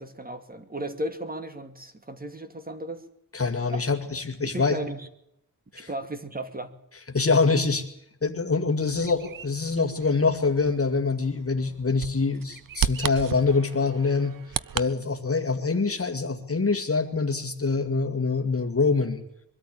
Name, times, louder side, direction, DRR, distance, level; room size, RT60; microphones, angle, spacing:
voice 1, 0.0-3.0 3.7-3.8 4.4-5.1 5.9-6.7, right 1 dB, 25° right, 8 dB, 2.5 m, -35 dB
voice 2, 3.3-4.8 5.7-5.9 7.1-7.9 8.2-14.4 14.7-19.2, left 4 dB, 40° left, 5 dB, 2.0 m, -25 dB
Bird vocalization bird call bird song, 8.8-14.9, right 9 dB, 65° right, 0.7 m, -35 dB
23.0 x 13.5 x 8.9 m, 0.78 s
wide cardioid pair, 120°, 36 cm